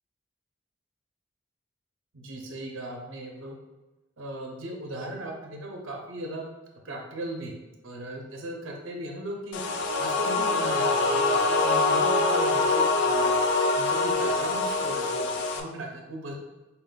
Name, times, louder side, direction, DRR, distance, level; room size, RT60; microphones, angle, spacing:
voice 1, 2.1-3.6 4.2-6.5 6.8-7.6 7.8-9.6 10.0-13.4 13.7-16.3, right 1 dB, 80° right, 1 dB, 0.6 m, -37 dB
sound 1, 9.5-15.6, left 3 dB, 65° left, 0.4 m, -24 dB
4.1 x 2.2 x 3.9 m, 1.1 s
head